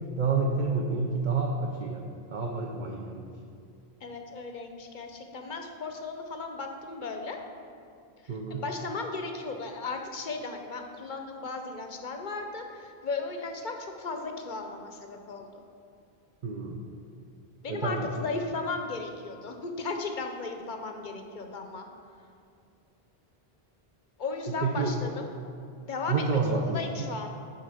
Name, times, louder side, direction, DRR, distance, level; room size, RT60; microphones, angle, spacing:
voice 1, 0.2-2.0 2.3-3.2 8.3-8.6 16.4-16.9 17.7-18.1 24.5-25.0 26.1-27.1, right 4 dB, 55° right, 0 dB, 0.7 m, -29 dB
voice 2, 4.0-7.4 8.2-15.6 17.6-21.9 24.2-25.3 25.8-27.3, left 3 dB, 55° left, 4 dB, 0.7 m, -36 dB
10.5 x 3.9 x 4.9 m, 2.4 s
omnidirectional pair, 1.1 m